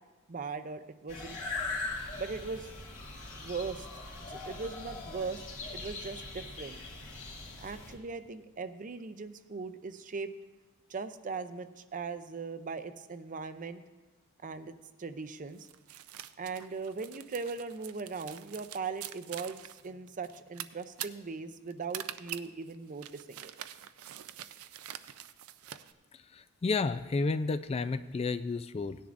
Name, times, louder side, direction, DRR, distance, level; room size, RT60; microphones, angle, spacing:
voice 1, 0.3-1.4 2.2-2.7 3.3-3.9 4.3-5.4 5.7-6.8 7.6-10.3 10.9-13.8 14.4-14.7 15.0-15.7 16.4-23.5, right 4 dB, 40° right, 11 dB, 0.5 m, -39 dB
sound 1, 1.1-7.9, left 3 dB, 70° left, 2.3 m, -41 dB
sound 2, 15.6-25.9, right 12 dB, 85° right, 0.5 m, -45 dB
voice 2, 26.6-29.0, left 3 dB, 30° left, 12 dB, 0.3 m, -31 dB
17.5 x 10.0 x 2.6 m, 1.2 s
head